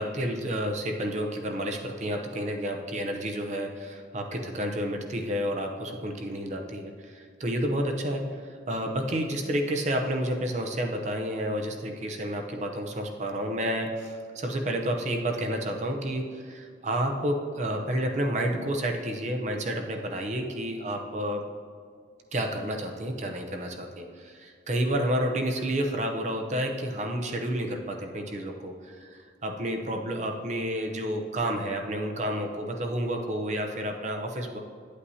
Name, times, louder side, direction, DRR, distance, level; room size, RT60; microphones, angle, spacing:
voice 1, 0.0-21.5 22.3-34.6, right 1 dB, 40° right, 3 dB, 0.7 m, -30 dB
9.7 x 8.3 x 2.7 m, 2.1 s
head